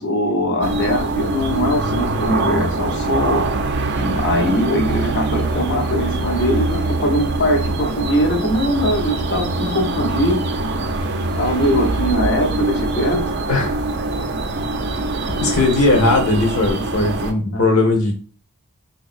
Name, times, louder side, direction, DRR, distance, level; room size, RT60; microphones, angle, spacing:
voice 1, 0.0-3.5 4.0-10.5 11.4-13.4 17.5-17.7, equal, 50° left, 0.7 m, -21 dB
sound 1, 0.6-17.3, right 2 dB, 50° right, 0.4 m, -23 dB
voice 2, 15.4-18.1, left 2 dB, 85° left, 1.1 m, -18 dB
3.5 x 2.9 x 2.4 m
head